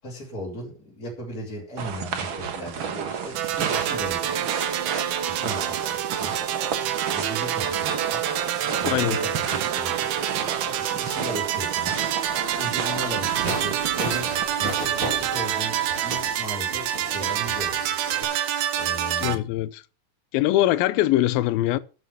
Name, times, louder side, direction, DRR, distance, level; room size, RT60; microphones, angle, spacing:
voice 1, 0.0-4.5 5.2-6.3 7.1-8.2 8.8-10.2 10.6-11.9 12.5-14.3 14.6-17.7 18.8-19.4, equal, 20° left, 5.3 m, -37 dB
sound 1, 1.8-14.4, right 7 dB, 60° right, 1.3 m, -33 dB
sound 2, 3.4-19.4, right 10 dB, 85° right, 3.0 m, -27 dB
voice 2, 8.9-9.2 19.2-19.8 20.3-21.8, left 15 dB, 80° left, 2.5 m, -22 dB
sound 3, 13.4-18.2, right 2 dB, 35° right, 4.4 m, -34 dB
12.0 x 8.3 x 5.9 m
omnidirectional pair, 4.4 m